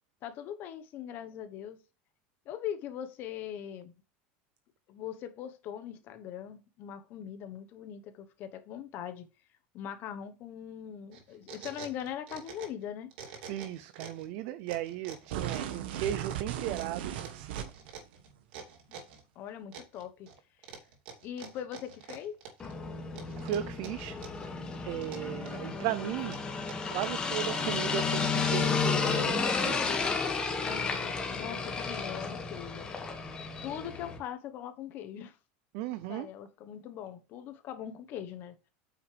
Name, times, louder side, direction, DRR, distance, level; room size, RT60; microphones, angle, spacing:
voice 1, 0.2-1.8 2.4-4.0 4.9-9.3 9.7-13.1 18.9-19.1 19.3-20.3 20.6-20.7 21.2-22.4 30.6-33.1 33.6-35.4 35.9-38.5, left 9 dB, 35° left, 1.1 m, -41 dB
sound 1, 11.1-12.8 13.1-14.3 14.7-19.2 19.7-20.4 20.6-22.7 23.2-24.5 24.7-25.7 26.2-29.1, right 7 dB, 70° right, 2.9 m, -47 dB
voice 2, 13.5-17.7 23.4-24.6 24.8-26.4 26.9-29.9 35.7-36.3, right 13 dB, 50° right, 0.5 m, -36 dB
sound 2, 15.3-18.0, right 10 dB, 90° right, 1.3 m, -36 dB
sound 3, 22.6-34.2, left 5 dB, 15° left, 1.4 m, -32 dB
8.9 x 6.0 x 3.4 m
supercardioid pair, 170°, 6 cm